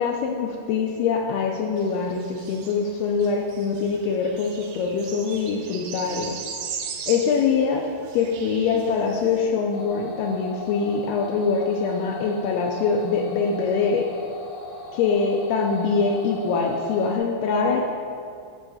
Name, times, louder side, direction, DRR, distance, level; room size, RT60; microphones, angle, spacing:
voice 1, 0.0-6.4 7.1-7.8 8.1-14.1 14.9-17.9, left 5 dB, 85° left, 1 dB, 2.2 m, -23 dB
sound 1, 1.8-9.4, right 6 dB, 75° right, 2.5 m, -38 dB
sound 2, 9.7-17.2, left 3 dB, 60° left, 3.0 m, -38 dB
10.5 x 4.4 x 6.9 m, 2.4 s
omnidirectional pair, 5.3 m